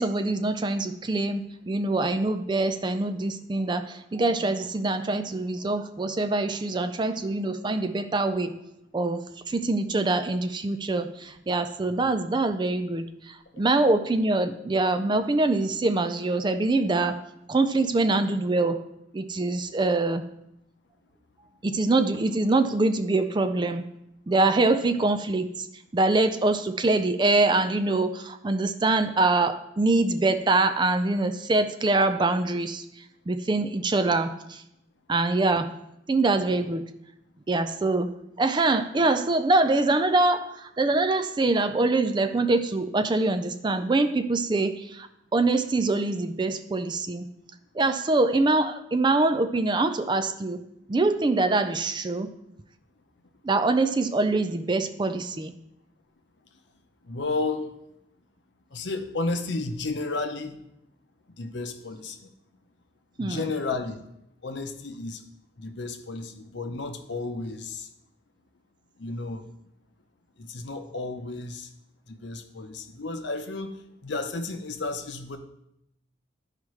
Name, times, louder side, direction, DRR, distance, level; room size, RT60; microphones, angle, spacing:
voice 1, 0.0-8.6 8.9-17.2 17.5-18.8 19.1-20.2 21.6-23.9 24.3-25.7 25.9-32.8 33.3-34.6 35.1-35.7 36.1-36.8 37.5-38.1 38.4-47.2 47.7-50.6 50.9-52.3 53.4-55.5 63.2-63.5, right 2 dB, 25° right, 9 dB, 0.4 m, -24 dB
voice 2, 57.1-57.7 58.7-60.5 61.4-62.3 63.2-64.0 64.4-65.2 65.6-67.9 69.0-69.4 70.4-71.7 72.1-73.7 74.0-75.4, left 3 dB, 65° left, 6 dB, 0.7 m, -32 dB
12.0 x 4.9 x 3.2 m, 0.80 s
head